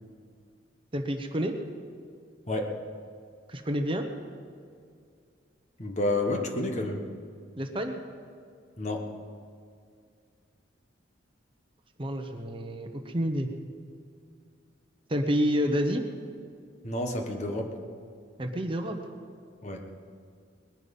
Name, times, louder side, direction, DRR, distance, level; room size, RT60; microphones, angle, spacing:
voice 1, 0.9-1.5 3.5-4.0 7.6-8.0 12.0-13.5 15.1-16.0 18.4-19.0, equal, 30° right, 5 dB, 1.0 m, -29 dB
voice 2, 2.5-2.8 5.8-7.0 8.8-9.1 16.8-17.7 19.6-19.8, left 2 dB, 40° left, 3 dB, 1.4 m, -30 dB
20.5 x 10.5 x 5.4 m, 2.2 s
head